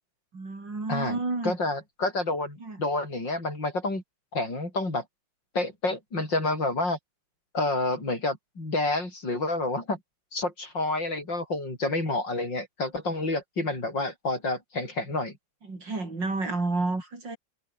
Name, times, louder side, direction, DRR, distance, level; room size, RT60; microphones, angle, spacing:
voice 1, 0.3-1.6 2.6-2.8 15.7-17.4, right 3 dB, 70° right, 5.9 m, -30 dB
voice 2, 0.9-4.0 4.3-5.0 5.5-7.0 7.5-10.0 10.3-15.4, left 2 dB, 75° left, 8.2 m, -29 dB
omnidirectional pair, 2.0 m